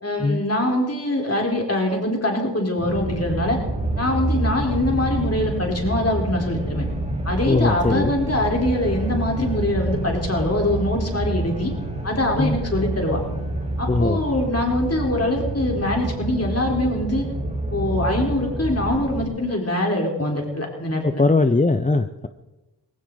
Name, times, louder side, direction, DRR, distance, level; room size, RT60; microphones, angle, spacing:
voice 1, 0.0-3.6 4.0-6.8 7.2-11.7 12.0-13.2 13.8-17.3 17.7-21.2, left 1 dB, 35° left, 0 dB, 4.2 m, -23 dB
sound 1, 2.8-19.2, right 1 dB, 15° right, 4.7 m, -27 dB
voice 2, 7.5-8.1 12.4-12.6 13.9-14.2 21.0-22.3, left 3 dB, 20° left, 9 dB, 0.6 m, -20 dB
18.0 x 16.0 x 4.0 m, 1.1 s
cardioid pair, 55°, 44 cm